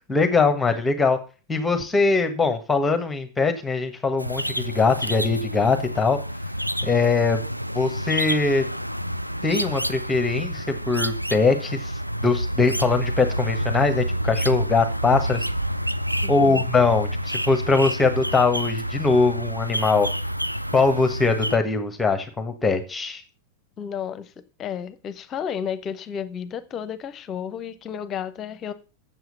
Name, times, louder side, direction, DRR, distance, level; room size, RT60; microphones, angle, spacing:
voice 1, 0.1-1.2 1.5-6.2 6.8-7.4 7.7-8.6 9.4-11.9 12.2-15.4 16.3-20.1 20.7-23.2, left 4 dB, 10° left, 1.3 m, -21 dB
sound 1, 4.2-21.6, equal, 90° right, 0.4 m, -28 dB
voice 2, 16.2-16.7 23.8-24.3 24.6-28.7, left 8 dB, 30° left, 0.8 m, -32 dB
7.8 x 7.3 x 7.1 m
figure-of-eight pair, 90°, 0 cm